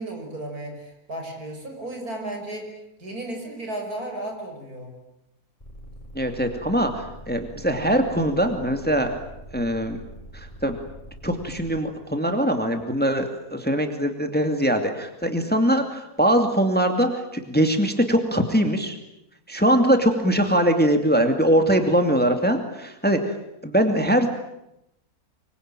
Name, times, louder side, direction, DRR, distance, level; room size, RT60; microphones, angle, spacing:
voice 1, 0.0-2.7 3.0-4.9, right 1 dB, 70° right, 3 dB, 6.4 m, -34 dB
sound 1, 5.6-11.8, equal, 20° left, 6.5 m, -43 dB
voice 2, 6.1-9.1 9.5-10.0 10.3-10.8 11.2-19.0 19.5-23.3 23.6-24.3, equal, 5° left, 6 dB, 2.4 m, -22 dB
25.0 x 24.0 x 9.0 m, 0.85 s
omnidirectional pair, 1.6 m